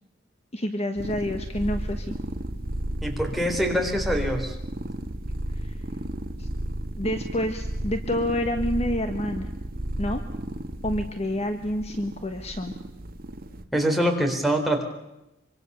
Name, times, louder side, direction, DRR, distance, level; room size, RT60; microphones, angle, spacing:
voice 1, 0.5-2.2 5.6-5.7 6.4-6.5 7.0-9.5 10.0-10.2 10.8-12.7, left 1 dB, 30° left, 7 dB, 1.4 m, -28 dB
sound 1, 1.0-13.6, right 1 dB, 45° right, 1.7 m, -33 dB
voice 2, 3.0-4.5 13.7-14.8, equal, ahead, 1 dB, 4.0 m, -24 dB
25.0 x 25.0 x 6.9 m, 0.93 s
head